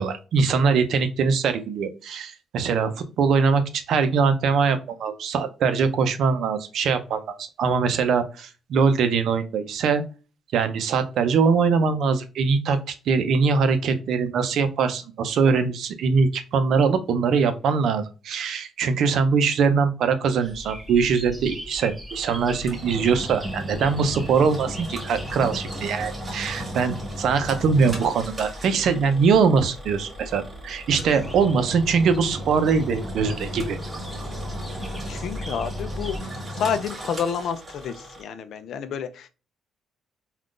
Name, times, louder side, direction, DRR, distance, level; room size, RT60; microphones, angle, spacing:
voice 1, 0.0-2.9 3.2-10.0 10.5-33.8, right 5 dB, 65° right, 9 dB, 0.5 m, -22 dB
sound 1, 20.4-36.2, equal, 5° right, 0.7 m, -40 dB
Engine, 22.1-38.2, equal, 25° right, 1.3 m, -36 dB
voice 2, 35.1-39.3, left 7 dB, 65° left, 10 dB, 0.4 m, -29 dB
3.6 x 2.4 x 2.4 m, 0.32 s
cardioid pair, 115°, 0 cm